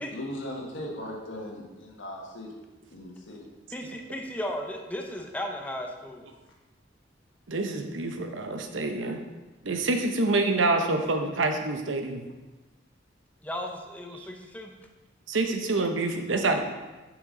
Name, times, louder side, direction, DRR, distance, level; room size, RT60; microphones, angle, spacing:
voice 1, 0.0-2.5 2.9-3.4, left 1 dB, 85° left, -1 dB, 1.4 m, -38 dB
voice 2, 3.7-6.2 13.4-14.7, left 1 dB, 10° left, 2 dB, 0.6 m, -35 dB
voice 3, 7.5-9.2 9.6-12.2 15.3-16.6, right 2 dB, 80° right, 5 dB, 0.8 m, -27 dB
7.2 x 6.1 x 3.8 m, 1.2 s
head